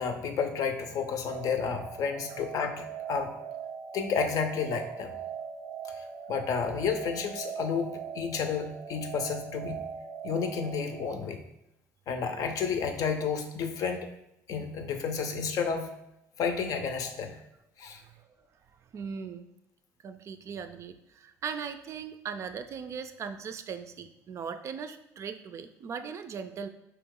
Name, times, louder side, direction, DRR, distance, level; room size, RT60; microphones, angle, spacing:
voice 1, 0.0-3.3 3.9-5.2 5.8-9.8 10.2-11.4 12.1-14.1 14.5-15.9 16.4-17.4 17.8-18.0, left 6 dB, 65° left, 6 dB, 0.6 m, -31 dB
sound 1, 1.3-11.2, right 7 dB, 10° right, 0.6 m, -41 dB
voice 2, 17.9-18.3 18.7-19.5 20.0-26.7, right 6 dB, 50° right, 9 dB, 0.4 m, -39 dB
4.7 x 2.9 x 3.6 m, 0.84 s
cardioid pair, 100°, 7 cm